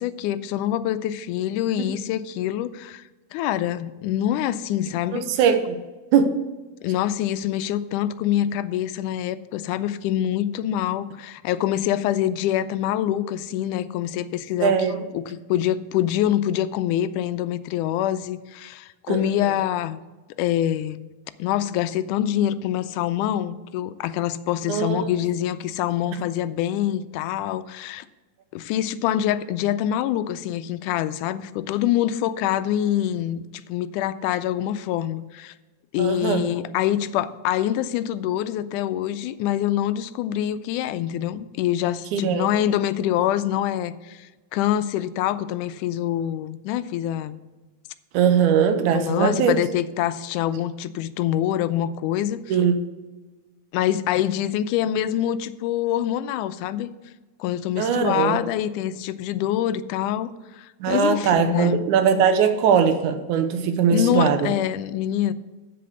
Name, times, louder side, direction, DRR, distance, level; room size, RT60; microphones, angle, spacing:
voice 1, 0.0-3.0 3.3-5.3 6.8-14.8 15.1-20.0 20.4-21.1 21.4-28.1 28.5-35.5 35.9-47.4 48.9-52.4 53.7-56.9 57.4-61.9 63.9-65.3, left 11 dB, 85° left, 14 dB, 2.1 m, -25 dB
voice 2, 5.1-5.8 6.1-6.4 14.6-15.0 19.1-19.5 24.7-25.1 36.0-36.4 42.1-42.5 48.1-49.6 52.5-52.9 57.8-58.4 60.8-64.5, right 7 dB, 85° right, 8 dB, 2.3 m, -20 dB
7.7 x 7.6 x 6.7 m, 1.2 s
omnidirectional pair, 3.5 m